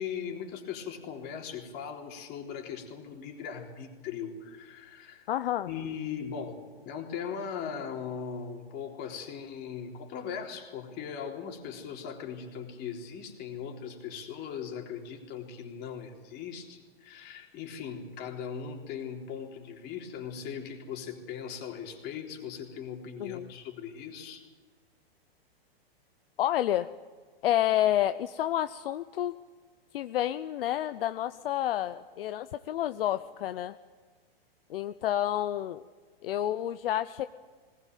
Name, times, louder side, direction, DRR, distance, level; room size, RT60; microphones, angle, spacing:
voice 1, 0.0-5.3 5.7-6.6 6.8-24.4, left 7 dB, 35° left, 2 dB, 3.8 m, -39 dB
voice 2, 5.3-5.7 23.2-23.5 26.4-26.9 27.4-29.3 29.9-33.8 34.7-35.8 36.2-37.2, left 12 dB, 65° left, 12 dB, 0.8 m, -29 dB
20.0 x 20.0 x 9.3 m, 1.5 s
hypercardioid pair, 140°, 30 cm